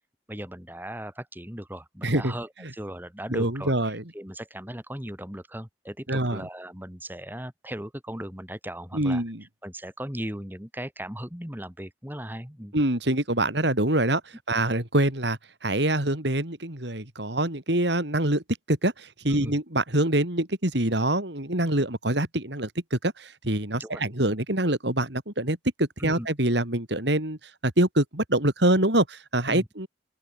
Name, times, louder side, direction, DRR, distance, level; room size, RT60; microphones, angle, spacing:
voice 1, 0.3-9.2 9.6-12.7 19.3-19.6 23.8-24.0 26.0-26.3 29.5-29.7, right 1 dB, 10° right, 3.8 m, -37 dB
voice 2, 2.0-2.3 3.3-4.0 6.1-6.5 8.9-9.4 12.7-14.2 14.5-18.4 18.7-29.9, right 1 dB, 65° right, 3.9 m, -25 dB
open air
head